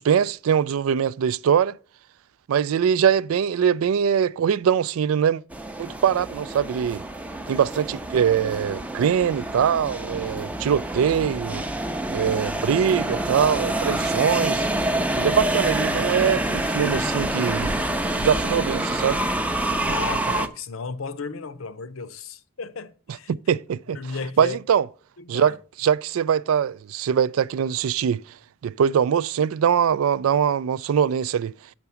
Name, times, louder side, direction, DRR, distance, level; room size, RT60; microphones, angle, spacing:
voice 1, 0.0-1.8 2.5-5.4 5.8-7.0 7.5-11.7 12.1-14.7 15.1-17.8 18.2-19.2 23.3-24.0 24.4-24.9 25.3-28.2 28.6-31.5, right 8 dB, 80° right, 0.3 m, -22 dB
sound 1, 5.5-20.5, right 1 dB, 5° right, 0.5 m, -27 dB
voice 2, 19.8-23.3 23.9-24.6 25.2-25.6, left 4 dB, 75° left, 0.7 m, -34 dB
6.7 x 5.9 x 6.9 m
head